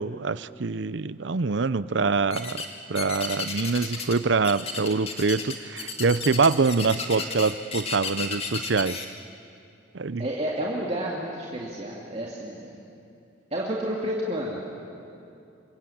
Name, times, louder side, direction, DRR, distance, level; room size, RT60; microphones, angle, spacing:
voice 1, 0.0-2.6 2.9-9.0 9.9-10.3, right 4 dB, 65° right, 16 dB, 0.6 m, -25 dB
sound 1, 2.3-2.7 2.9-4.2 4.4-9.0, left 5 dB, 30° left, 2.1 m, -33 dB
voice 2, 10.2-12.8 13.5-14.6, equal, 30° right, -4 dB, 2.6 m, -30 dB
27.5 x 24.5 x 8.7 m, 2.6 s
head